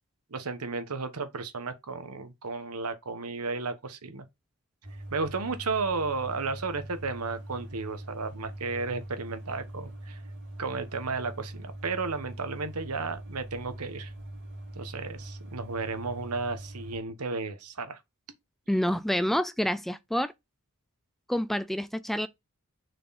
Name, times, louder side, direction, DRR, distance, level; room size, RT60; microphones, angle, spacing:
voice 1, 0.3-4.2 5.1-10.2 10.6-14.1 14.7-18.0, right 4 dB, 85° right, 1.2 m, -33 dB
sound 1, 4.8-17.0, right 1 dB, 55° right, 3.0 m, -42 dB
voice 2, 18.7-20.3 21.3-22.3, equal, ahead, 0.3 m, -28 dB
6.4 x 4.5 x 4.1 m
head